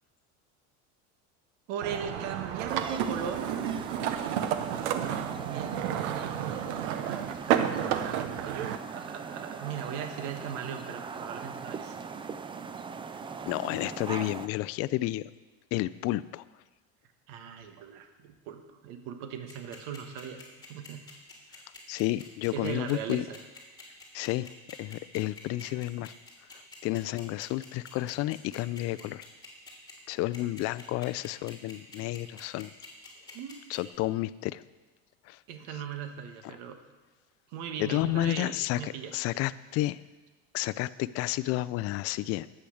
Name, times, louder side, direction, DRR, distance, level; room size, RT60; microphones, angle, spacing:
voice 1, 1.7-3.8 5.1-5.8 6.0-8.6 8.9-12.0 17.3-20.4 20.7-21.1 22.5-23.4 33.3-33.6 35.5-36.8 37.5-39.1, right 8 dB, 75° right, 6 dB, 1.4 m, -39 dB
sound 1, 1.8-8.8, right 9 dB, 90° right, 1.0 m, -31 dB
sound 2, 2.7-14.5, right 5 dB, 15° right, 0.4 m, -41 dB
voice 2, 13.5-15.3 15.7-16.4 21.9-23.2 24.1-24.5 24.8-26.1 26.5-29.3 30.1-32.7 33.7-34.6 35.2-35.4 37.8-40.0 40.5-42.5, left 17 dB, 45° left, 15 dB, 0.4 m, -31 dB
sound 3, 19.5-34.0, left 4 dB, 10° left, 3.2 m, -48 dB
11.5 x 8.6 x 6.4 m, 1.2 s
cardioid pair, 135°, 33 cm